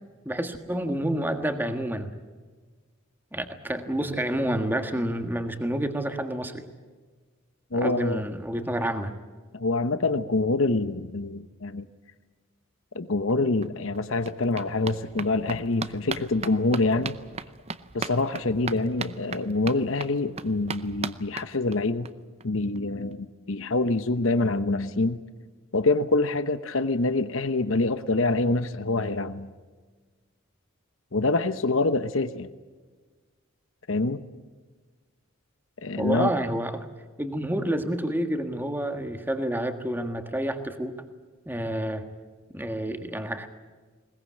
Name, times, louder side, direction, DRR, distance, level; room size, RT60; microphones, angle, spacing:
voice 1, 0.2-2.1 3.3-6.6 7.7-9.1 36.0-36.9 37.2-40.9 41.4-42.0 42.5-43.5, right 1 dB, 10° right, 7 dB, 1.6 m, -29 dB
voice 2, 7.7-8.2 9.5-11.9 12.9-17.2 17.9-22.1 22.4-25.2 25.7-29.5 31.1-32.5 33.9-34.2 35.8-36.3, left 2 dB, 70° left, 11 dB, 1.0 m, -26 dB
sound 1, 13.3-13.4 13.6-22.1 22.4-22.5 22.8-22.9 23.1-23.2, right 5 dB, 30° right, 0.7 m, -38 dB
21.0 x 20.5 x 8.6 m, 1.4 s
head